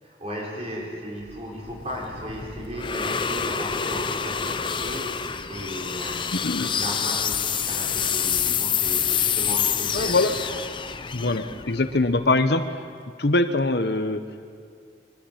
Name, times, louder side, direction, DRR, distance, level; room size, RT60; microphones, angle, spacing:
voice 1, 0.0-6.2 6.6-10.5, equal, 35° right, -2 dB, 5.0 m, -35 dB
sound 1, 1.3-12.5, left 7 dB, 25° left, 0.6 m, -27 dB
voice 2, 6.3-6.7 9.9-10.3 11.1-12.8 13.2-14.2, left 2 dB, 60° left, 9 dB, 1.0 m, -23 dB
23.5 x 13.5 x 9.0 m, 2.2 s
head